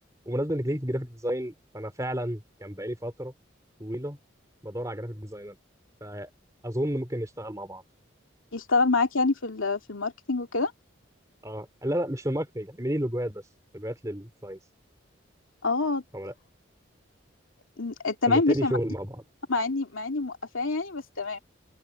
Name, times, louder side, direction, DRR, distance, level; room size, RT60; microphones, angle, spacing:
voice 1, 0.2-3.3 3.8-4.2 4.6-5.6 6.0-6.3 6.6-7.8 11.4-13.4 13.7-14.6 16.1-16.3 18.3-19.2, equal, 15° right, 3.3 m, -31 dB
voice 2, 8.5-10.7 15.6-16.0 17.8-18.7 19.5-21.4, left 3 dB, 90° left, 2.7 m, -26 dB
open air
head